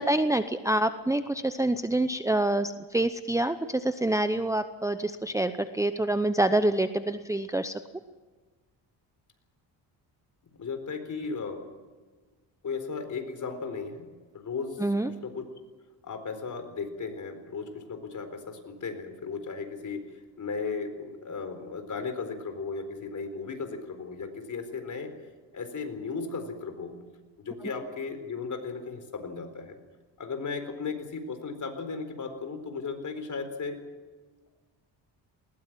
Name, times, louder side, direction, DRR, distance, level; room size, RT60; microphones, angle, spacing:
voice 1, 0.0-7.8 14.8-15.1 27.6-27.7, right 1 dB, 5° right, 9 dB, 0.8 m, -26 dB
voice 2, 10.5-11.6 12.6-14.8 15.1-15.5 16.0-20.0 20.4-25.1 25.5-27.0 27.4-29.8 30.2-33.8, left 4 dB, 45° left, 8 dB, 4.2 m, -36 dB
20.5 x 19.0 x 7.5 m, 1.3 s
cardioid pair, 100°, 43 cm